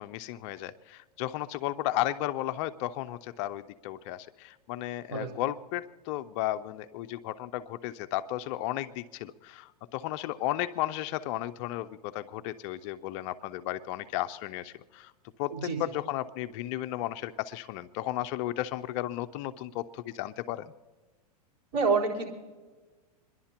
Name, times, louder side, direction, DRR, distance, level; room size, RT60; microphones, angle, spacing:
voice 1, 0.0-15.1 15.4-20.7, left 14 dB, 45° left, 10 dB, 0.5 m, -34 dB
voice 2, 21.7-22.3, right 4 dB, 55° right, -4 dB, 4.2 m, -27 dB
27.5 x 11.0 x 2.9 m, 1.3 s
hypercardioid pair, 115°, 21 cm